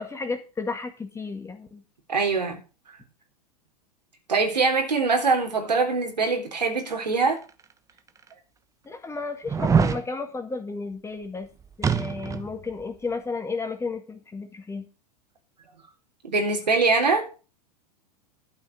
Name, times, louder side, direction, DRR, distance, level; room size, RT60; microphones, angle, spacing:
voice 1, 0.0-1.8 8.9-11.5 11.8-14.8, left 4 dB, 15° left, 1.9 m, -33 dB
voice 2, 2.1-2.6 4.3-7.4 16.2-17.3, right 4 dB, 85° right, 3.6 m, -23 dB
sound 1, 7.5-7.6 8.3-8.4 9.5-10.0 11.8-12.5 12.8-12.9, right 6 dB, 15° right, 1.0 m, -23 dB
12.0 x 5.8 x 6.2 m
hypercardioid pair, 95°, 21 cm